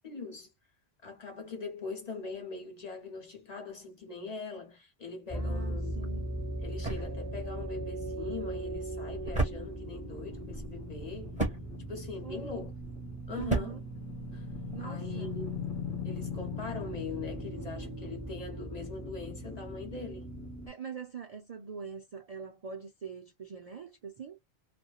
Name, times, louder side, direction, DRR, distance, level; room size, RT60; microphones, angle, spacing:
voice 1, 0.0-0.5 1.0-5.9 6.6-11.4 11.9-12.7 13.3-13.8 14.3-14.5 14.8-15.6 16.0-20.4, left 4 dB, 40° left, 1.0 m, -42 dB
sound 1, 5.3-20.7, equal, 15° left, 0.9 m, -38 dB
voice 2, 5.3-6.3 12.2-12.7 13.3-13.8 14.7-15.3 20.7-24.4, right 6 dB, 55° right, 0.4 m, -43 dB
sound 2, 6.0-14.8, right 2 dB, 5° right, 1.1 m, -37 dB
2.8 x 2.4 x 2.3 m
omnidirectional pair, 1.1 m